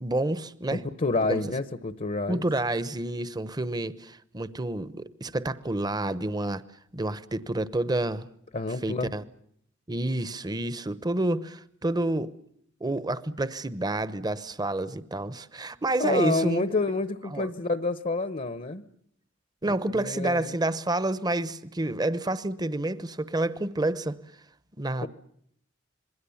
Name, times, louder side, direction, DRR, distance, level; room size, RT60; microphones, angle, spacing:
voice 1, 0.0-0.8 1.3-1.4 2.3-6.6 6.9-8.3 8.8-9.2 9.9-12.3 12.8-16.6 17.3-17.5 19.6-24.2 24.8-25.1, right 2 dB, 20° right, 0.9 m, -29 dB
voice 2, 0.7-2.4 8.5-9.1 16.0-18.8 19.7-20.6 25.0-25.1, left 3 dB, 40° left, 0.9 m, -29 dB
26.5 x 21.5 x 7.1 m
head